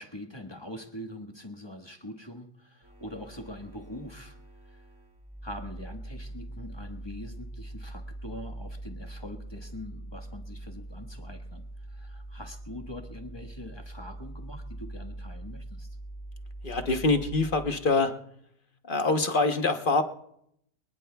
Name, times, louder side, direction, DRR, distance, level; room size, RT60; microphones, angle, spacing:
voice 1, 0.0-4.4 4.7-4.9 5.4-16.0, left 1 dB, 15° left, 3 dB, 1.2 m, -43 dB
sound 1, 2.8-17.7, right 1 dB, 15° right, 2.7 m, -42 dB
voice 2, 16.6-18.2 18.8-20.0, left 3 dB, 35° left, 6 dB, 1.0 m, -25 dB
25.0 x 19.5 x 2.3 m, 0.73 s
omnidirectional pair, 1.8 m